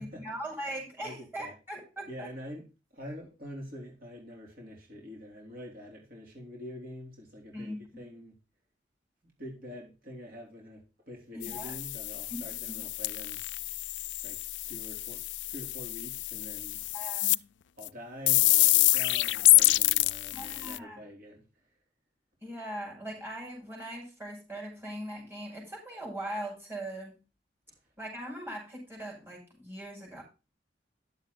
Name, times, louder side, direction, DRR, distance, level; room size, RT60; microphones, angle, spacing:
voice 1, 0.0-2.3 7.5-8.0 11.3-11.7 12.3-12.4 12.7-12.8 16.9-17.4 20.3-21.0 22.4-27.2 28.0-30.2, right 1 dB, 15° right, 6.0 m, -40 dB
voice 2, 1.0-1.5 2.1-2.7 2.9-8.4 9.2-13.4 14.2-14.4 14.6-16.8 17.8-21.5 27.7-27.8, equal, 55° right, 3.9 m, -45 dB
sound 1, 11.4-17.4 17.8-17.9 18.3-20.8, left 18 dB, 85° left, 0.4 m, -27 dB
11.0 x 7.5 x 4.0 m
head